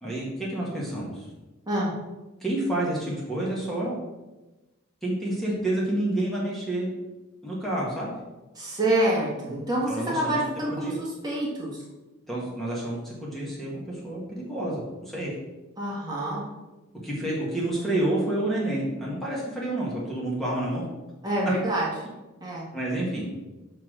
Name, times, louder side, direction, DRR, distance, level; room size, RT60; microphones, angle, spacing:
voice 1, 0.0-1.3 2.4-4.0 5.0-6.9 7.4-8.1 9.9-10.4 10.7-10.9 12.3-15.3 17.0-20.9 22.7-23.3, right 1 dB, ahead, -6 dB, 1.7 m, -29 dB
voice 2, 8.6-11.8 15.8-16.4 21.2-21.9 22.4-22.7, right 1 dB, 20° right, -5 dB, 1.7 m, -27 dB
5.9 x 5.8 x 6.2 m, 1.1 s
head